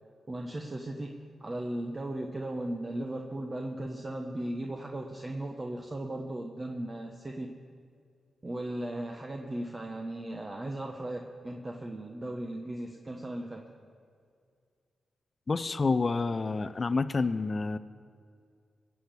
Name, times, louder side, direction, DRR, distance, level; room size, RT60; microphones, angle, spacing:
voice 1, 0.3-7.5 8.4-13.7, right 1 dB, 30° right, 2 dB, 1.1 m, -37 dB
voice 2, 15.5-17.8, left 3 dB, 45° left, 11 dB, 0.5 m, -28 dB
18.0 x 6.4 x 8.3 m, 2.2 s
cardioid pair, 60°, 0 cm